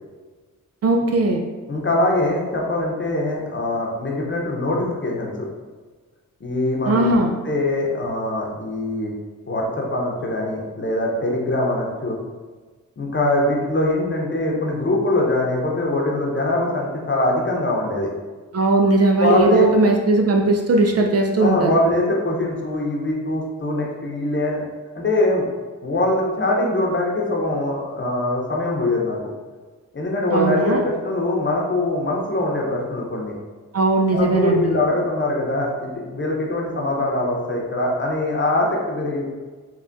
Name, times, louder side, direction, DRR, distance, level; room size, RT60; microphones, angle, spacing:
voice 1, 0.8-1.4 6.9-7.3 18.5-21.7 30.3-30.8 33.7-34.8, right 2 dB, 45° right, 2 dB, 0.4 m, -18 dB
voice 2, 1.7-5.5 6.4-9.1 9.5-12.2 13.0-18.1 19.2-19.7 21.4-24.6 24.9-25.4 25.8-29.3 29.9-33.3 34.1-39.3, left 1 dB, 35° left, -2 dB, 0.8 m, -22 dB
3.4 x 2.3 x 2.6 m, 1.4 s
supercardioid pair, 45°, 35 cm